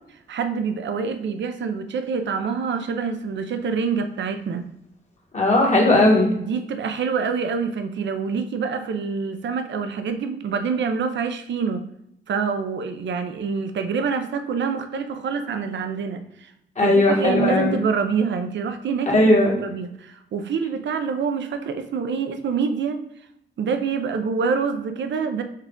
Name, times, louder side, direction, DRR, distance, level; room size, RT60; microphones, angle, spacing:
voice 1, 0.3-4.7 6.3-11.8 12.3-16.5 16.8-19.3 19.6-23.0 23.6-25.4, right 5 dB, 70° right, 8 dB, 0.5 m, -26 dB
voice 2, 5.3-6.3 16.8-17.8 19.1-19.5, left 2 dB, 35° left, -2 dB, 1.3 m, -17 dB
5.5 x 2.4 x 3.7 m, 0.78 s
cardioid pair, 85°, 20 cm